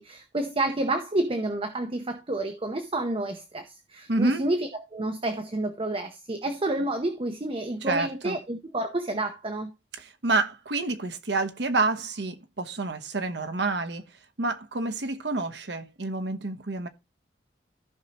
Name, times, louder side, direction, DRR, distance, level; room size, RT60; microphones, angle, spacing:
voice 1, 0.0-9.7, right 2 dB, 30° right, 0.8 m, -29 dB
voice 2, 4.1-4.4 7.8-8.4 10.0-14.0 14.4-16.9, right 3 dB, 70° right, 1.0 m, -28 dB
14.5 x 5.6 x 2.9 m
head